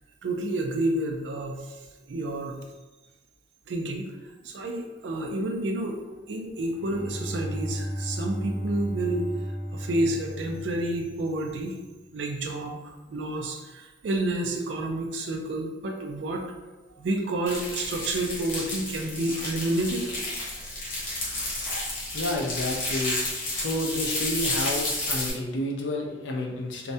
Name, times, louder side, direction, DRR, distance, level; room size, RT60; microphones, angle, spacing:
voice 1, 0.2-1.6 2.1-2.6 3.7-4.1 4.4-6.0 6.3-9.2 9.7-11.8 12.1-16.4 16.9-20.4, right 1 dB, 70° right, 2 dB, 0.4 m, -29 dB
Bowed string instrument, 6.5-11.5, equal, ahead, 0.6 m, -34 dB
cigarette pack, 17.5-25.3, left 2 dB, 45° left, 0.7 m, -31 dB
voice 2, 22.1-23.2 23.5-26.9, left 1 dB, 80° left, 1 dB, 0.4 m, -30 dB
2.2 x 2.1 x 2.6 m, 1.2 s
head